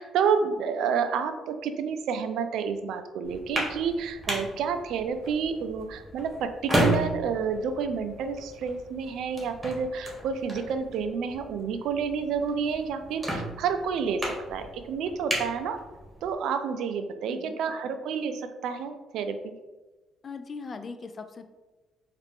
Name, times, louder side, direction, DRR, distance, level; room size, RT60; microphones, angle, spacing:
voice 1, 0.0-15.8 16.2-19.5, right 6 dB, 75° right, 8 dB, 0.4 m, -29 dB
sound 1, 3.2-16.3, right 1 dB, 15° right, 1.4 m, -34 dB
voice 2, 17.3-17.6 20.2-21.4, left 4 dB, 45° left, 8 dB, 0.4 m, -40 dB
4.2 x 2.4 x 3.4 m, 1.2 s
supercardioid pair, 70°, 0 cm